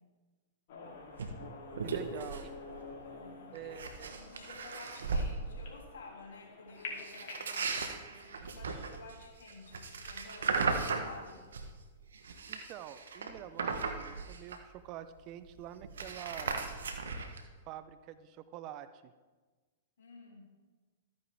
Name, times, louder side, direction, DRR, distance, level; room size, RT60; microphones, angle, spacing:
sound 1, 0.7-7.5, left 3 dB, 55° left, 2.7 m, -48 dB
sound 2, 1.2-1.3 1.7-2.5 2.7-3.0 3.5-5.3 7.0-11.8 12.1-14.8 15.2-15.3 15.5-17.5, right 4 dB, 80° right, 1.0 m, -37 dB
voice 1, 1.8-2.5 3.5-4.1 12.5-16.7 17.7-19.1, right 11 dB, 40° right, 12 dB, 0.5 m, -46 dB
voice 2, 3.0-3.8 4.1-11.5 20.0-20.4, left 3 dB, 75° left, -1 dB, 2.8 m, -52 dB
13.5 x 9.4 x 3.4 m, 1.3 s
hypercardioid pair, 115°, 0 cm